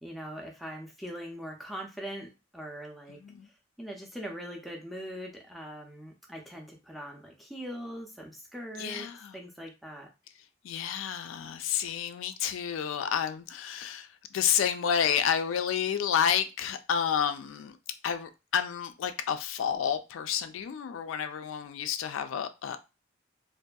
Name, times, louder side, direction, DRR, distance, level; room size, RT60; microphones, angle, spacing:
voice 1, 0.0-3.2 3.8-10.1, equal, ahead, 0.5 m, -41 dB
voice 2, 8.8-9.3 10.6-14.1 14.3-17.7 18.0-22.8, left 8 dB, 80° left, 0.3 m, -30 dB
2.6 x 2.5 x 2.2 m
head